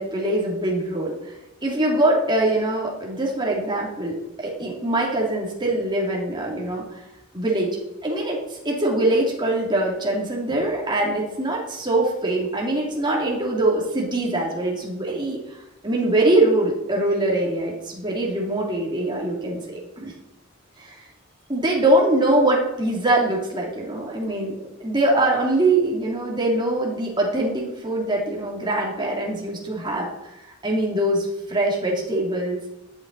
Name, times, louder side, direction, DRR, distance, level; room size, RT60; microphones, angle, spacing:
voice 1, 0.0-1.3 1.6-6.8 7.3-15.4 15.8-20.1 20.8-21.0 21.5-30.3 30.6-32.6, right 1 dB, 20° right, -2 dB, 3.0 m, -23 dB
12.5 x 8.9 x 4.2 m, 0.93 s
head